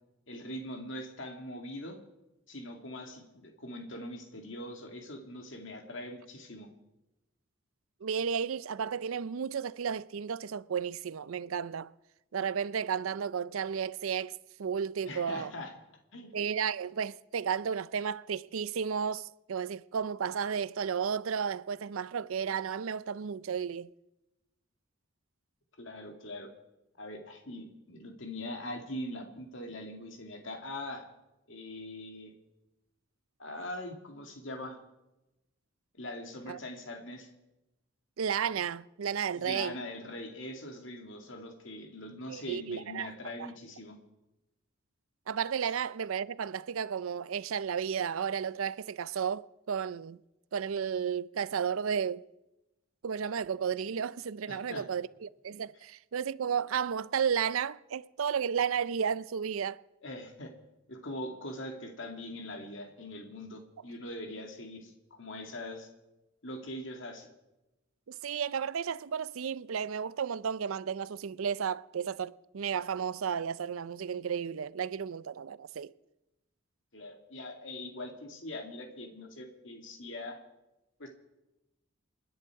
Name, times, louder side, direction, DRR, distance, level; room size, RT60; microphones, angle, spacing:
voice 1, 0.3-2.0 2.5-6.7 15.1-15.7 16.1-16.3 25.8-26.5 27.0-31.1 31.5-32.3 33.4-34.8 35.9-37.3 39.3-44.0 45.6-45.7 54.5-54.8 60.0-60.5 60.9-65.9 66.4-67.3 76.9-80.4 81.0-81.1, left 1 dB, 65° left, 2.3 m, -42 dB
voice 2, 8.0-11.9 12.3-15.5 16.3-23.9 36.5-36.6 38.2-39.8 42.3-43.1 43.4-43.5 45.3-50.2 50.5-52.2 53.0-59.8 68.1-75.9, right 7 dB, 80° right, 0.5 m, -33 dB
28.0 x 10.5 x 4.8 m
head